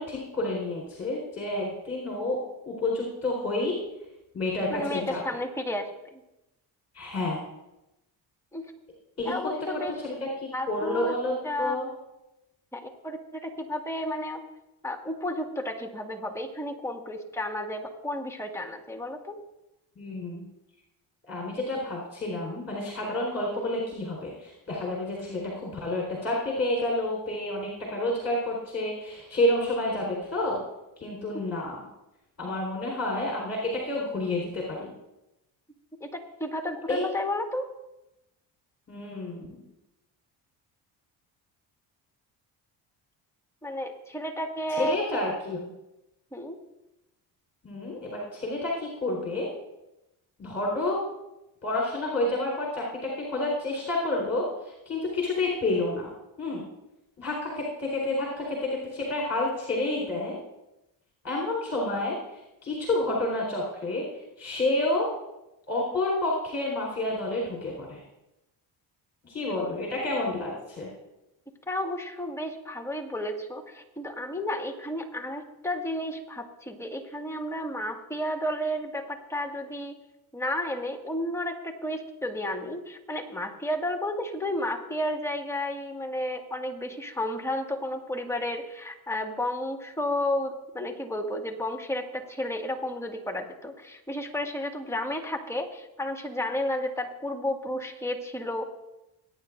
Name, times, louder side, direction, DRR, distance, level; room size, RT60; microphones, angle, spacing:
voice 1, 0.0-2.4 2.7-3.8 4.3-5.2 6.9-7.4 9.2-9.3 10.0-11.3 11.6-11.9 20.0-20.5 21.3-30.6 31.0-31.8 32.4-34.9 36.9-37.0 38.9-39.6 44.7-45.7 47.6-49.5 50.4-51.0 51.6-56.1 56.4-56.6 57.2-60.4 61.2-64.0 64.4-65.1 65.7-68.0 69.2-70.9, left 2 dB, 30° left, -3 dB, 4.5 m, -29 dB
voice 2, 4.7-6.2 8.5-8.7 9.2-9.9 10.5-11.1 11.4-11.8 12.7-14.4 14.8-19.4 36.0-37.7 43.6-45.0 46.3-46.6 71.7-80.0 80.3-98.6, left 1 dB, 5° left, 3 dB, 2.0 m, -32 dB
21.5 x 9.5 x 2.6 m, 0.94 s
supercardioid pair, 65°, 49 cm